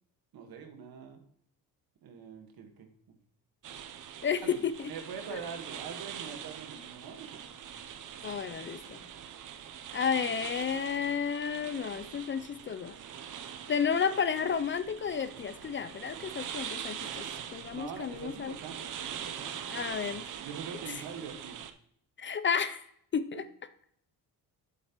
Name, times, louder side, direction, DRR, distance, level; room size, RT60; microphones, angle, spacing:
voice 1, 0.3-1.2 2.0-2.9 4.4-7.4 8.5-8.6 17.7-19.7 20.4-21.6 23.3-23.4, right 6 dB, 75° right, 5 dB, 1.5 m, -44 dB
sound 1, 3.6-21.7, right 9 dB, 55° right, 0.7 m, -43 dB
voice 2, 4.2-4.9 5.3-5.4 8.2-9.0 9.9-12.9 13.7-18.5 19.7-20.3 22.2-22.9 23.1-23.4, left 7 dB, 35° left, 13 dB, 0.4 m, -32 dB
8.0 x 7.2 x 2.9 m, 0.66 s
cardioid pair, 110°, 37 cm